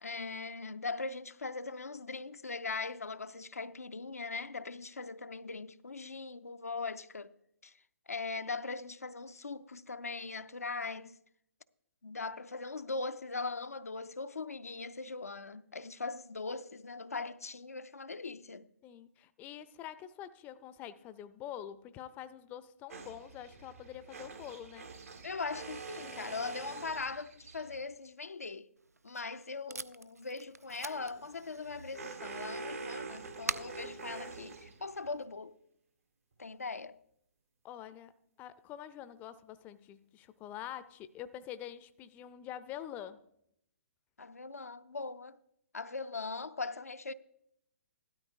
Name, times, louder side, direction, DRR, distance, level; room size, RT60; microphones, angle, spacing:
voice 1, 0.0-7.3 7.6-7.7 8.1-11.1 12.0-18.7 25.2-28.7 29.0-35.6 36.4-37.0 44.2-45.4 45.7-47.1, left 4 dB, 80° left, 0.5 m, -40 dB
voice 2, 18.8-24.9 37.6-38.1 38.4-43.2, left 11 dB, 20° left, 0.5 m, -46 dB
sound 1, 22.9-27.8 30.9-35.1, right 4 dB, 70° right, 1.8 m, -46 dB
Packing tape duct tape, 28.8-35.2, right 3 dB, 90° right, 0.4 m, -46 dB
16.0 x 12.5 x 2.6 m
figure-of-eight pair, 125°, 8 cm